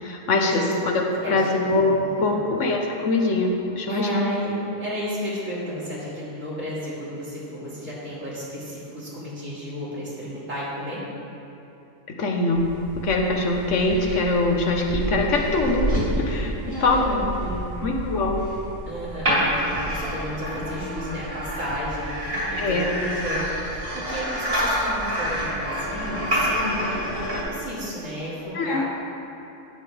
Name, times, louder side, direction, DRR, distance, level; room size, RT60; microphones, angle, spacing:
voice 1, 0.0-4.1 12.2-12.7 13.0-16.5 16.8-17.2 17.8-18.5 22.6-22.9 26.6-26.9 28.5-28.8, left 2 dB, 70° left, 1 dB, 1.3 m, -23 dB
voice 2, 2.0-2.4 3.9-11.0 16.6-17.8 18.9-28.8, equal, 85° right, -8 dB, 2.8 m, -32 dB
sound 1, 12.6-27.4, equal, 50° right, 2.5 m, -28 dB
10.5 x 8.8 x 3.4 m, 2.9 s
omnidirectional pair, 1.3 m